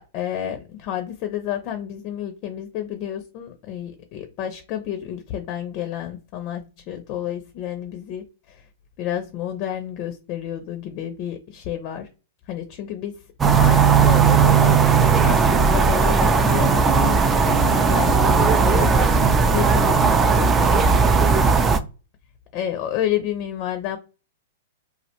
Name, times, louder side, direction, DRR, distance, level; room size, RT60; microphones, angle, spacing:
voice 1, 0.0-8.7 9.0-12.1 12.5-14.8 15.2-20.9 22.5-24.0, left 10 dB, 45° left, 7 dB, 0.5 m, -30 dB
sound 1, 13.4-21.8, right 5 dB, 20° right, 0.4 m, -17 dB
2.3 x 2.1 x 2.8 m, 0.31 s
hypercardioid pair, 115°, 0 cm